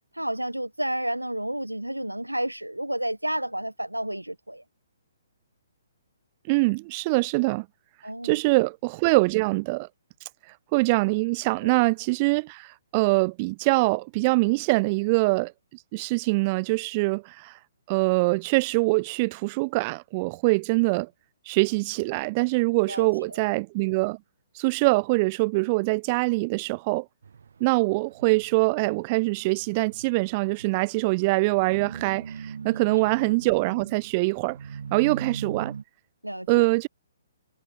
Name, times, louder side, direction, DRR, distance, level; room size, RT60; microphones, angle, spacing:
voice 1, 0.1-4.6 8.0-8.4 11.6-11.7 22.9-23.1 32.9-33.0 36.2-36.7, right 1 dB, 90° right, 1.2 m, -31 dB
voice 2, 6.5-7.7 8.2-9.9 10.7-15.5 15.9-17.5 17.9-21.1 21.5-24.2 24.6-27.1 27.6-34.6 34.9-35.7 36.5-36.9, right 26 dB, 30° right, 0.3 m, -24 dB
sound 1, 27.2-35.8, right 6 dB, 60° right, 1.8 m, -40 dB
figure-of-eight pair, 125°, 0 cm